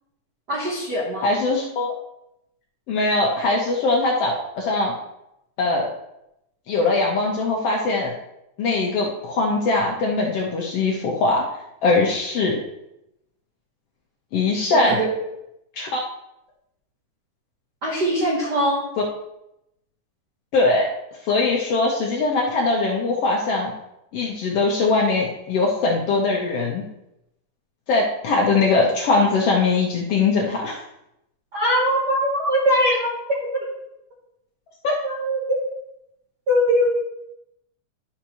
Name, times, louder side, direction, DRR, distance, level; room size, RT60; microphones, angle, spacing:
voice 1, 0.5-1.3 14.8-15.1 17.8-18.8 31.5-33.6 35.0-35.7 36.5-36.9, equal, 60° right, -3 dB, 1.0 m, -22 dB
voice 2, 1.2-1.9 2.9-4.9 5.6-5.9 6.7-8.1 8.6-11.5 11.8-12.6 14.3-15.0 15.8-16.0 20.5-20.9 21.2-23.7 24.1-26.8 27.9-30.8 34.8-35.0, left 3 dB, 70° left, -1 dB, 1.5 m, -21 dB
11.5 x 5.8 x 3.0 m, 0.86 s
omnidirectional pair, 3.7 m